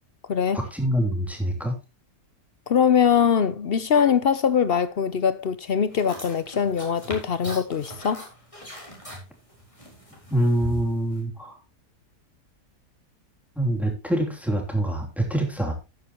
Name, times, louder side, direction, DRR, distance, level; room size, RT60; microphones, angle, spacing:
voice 1, 0.5-1.7 10.3-11.6 13.5-15.7, right 1 dB, ahead, 3.2 m, -25 dB
voice 2, 2.7-8.2, left 7 dB, 55° left, 0.6 m, -22 dB
sound 1, 5.9-11.2, right 1 dB, 20° left, 3.9 m, -40 dB
13.0 x 9.7 x 3.0 m
omnidirectional pair, 1.8 m